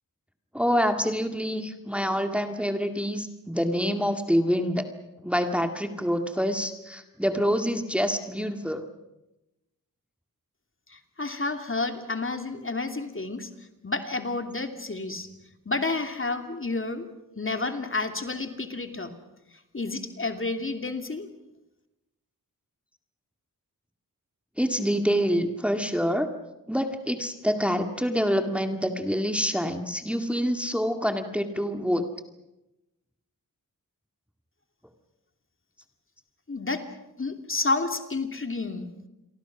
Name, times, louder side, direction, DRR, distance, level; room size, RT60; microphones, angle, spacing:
voice 1, 0.5-4.9 5.2-8.8 24.6-26.3 26.7-32.0, equal, 5° right, 6 dB, 2.1 m, -26 dB
voice 2, 10.9-13.5 13.8-15.3 15.7-17.1 17.4-19.1 19.7-21.3 36.5-36.8 37.2-38.9, left 3 dB, 35° left, 6 dB, 2.8 m, -30 dB
29.0 x 23.0 x 6.1 m, 0.94 s
cardioid pair, 55°, 35 cm